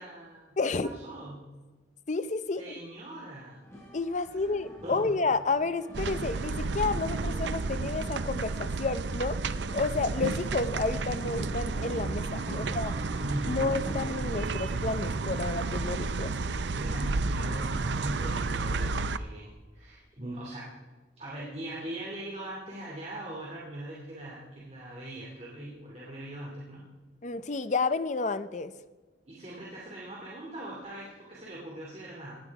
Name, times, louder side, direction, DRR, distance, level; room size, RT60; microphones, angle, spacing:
voice 1, 0.0-0.5 0.8-1.4 2.6-3.6 4.4-4.5 4.8-5.2 12.4-13.6 16.7-20.7 21.2-26.8 29.3-32.4, right 1 dB, 35° right, -5 dB, 2.7 m, -40 dB
voice 2, 0.6-0.9 2.1-2.6 3.9-9.4 9.7-12.9 13.5-16.3 27.2-28.7, left 3 dB, 40° left, 13 dB, 0.6 m, -30 dB
sound 1, 3.6-14.2, equal, 15° left, 4.9 m, -48 dB
sound 2, 5.9-19.2, right 3 dB, 70° right, 0.6 m, -31 dB
17.0 x 10.0 x 4.7 m, 1.3 s
head